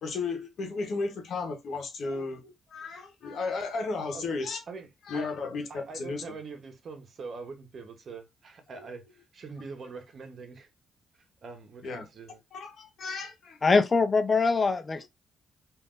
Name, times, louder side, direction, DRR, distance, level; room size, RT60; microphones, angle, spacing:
voice 1, 0.0-4.6 5.1-6.2 8.7-8.9 11.8-12.1 12.5-13.6, left 3 dB, 70° left, 1.0 m, -34 dB
voice 2, 5.7-10.7 11.4-12.4, right 4 dB, 55° right, 0.9 m, -43 dB
voice 3, 13.6-15.1, left 4 dB, 40° left, 0.6 m, -23 dB
3.4 x 2.6 x 2.5 m
supercardioid pair, 65°, 0 cm